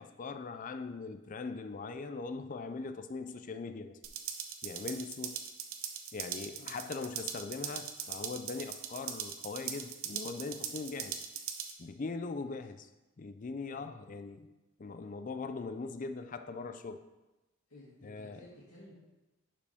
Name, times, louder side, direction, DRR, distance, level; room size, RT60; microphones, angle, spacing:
voice 1, 0.0-4.0 4.6-5.4 6.1-11.2 11.8-12.9 13.2-14.5 14.8-17.0 18.0-18.5, left 4 dB, 35° left, 9 dB, 0.4 m, -41 dB
sound 1, 4.0-11.7, right 8 dB, 70° right, 0.8 m, -41 dB
voice 2, 13.7-14.0 17.7-18.9, left 1 dB, 85° left, -8 dB, 2.1 m, -55 dB
11.0 x 5.0 x 3.5 m, 1.0 s
head